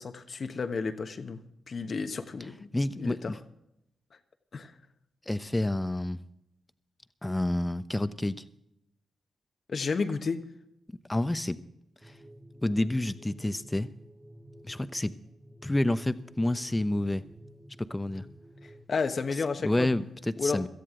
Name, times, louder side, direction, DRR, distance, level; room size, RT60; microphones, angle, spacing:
voice 1, 0.0-1.4 1.7-2.7 3.0-3.4 4.5-4.7 9.7-10.4 18.6-19.9 20.4-20.7, left 4 dB, 55° left, 8 dB, 1.2 m, -32 dB
voice 2, 2.7-3.4 5.3-6.2 7.2-8.4 11.1-11.6 12.6-13.9 14.6-15.2 15.6-17.2 17.8-18.2 19.6-20.7, left 1 dB, 15° left, 12 dB, 0.9 m, -29 dB
sound 1, 12.0-18.8, equal, 30° right, 1.6 m, -51 dB
17.5 x 13.5 x 3.8 m, 0.83 s
supercardioid pair, 45°, 0 cm